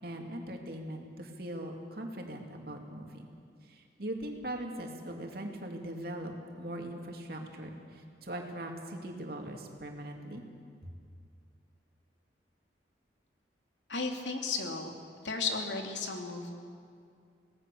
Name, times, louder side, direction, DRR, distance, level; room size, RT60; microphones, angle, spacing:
voice 1, 0.0-3.2 3.7-10.4, right 1 dB, 55° right, 2 dB, 2.8 m, -40 dB
voice 2, 13.9-14.9 15.2-16.6, left 4 dB, 85° left, 2 dB, 2.7 m, -34 dB
26.0 x 18.0 x 7.0 m, 2.3 s
head